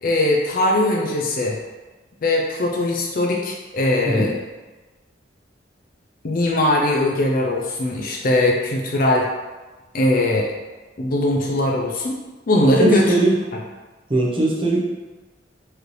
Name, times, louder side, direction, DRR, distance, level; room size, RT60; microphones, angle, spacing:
voice 1, 0.0-1.6 2.2-4.3 6.2-9.3 9.9-10.5 11.0-12.2 12.5-13.3, left 1 dB, 50° left, -1 dB, 0.4 m, -20 dB
voice 2, 12.6-13.3 14.1-14.9, right 2 dB, 30° right, -4 dB, 0.8 m, -20 dB
4.7 x 3.1 x 3.2 m, 1.2 s
head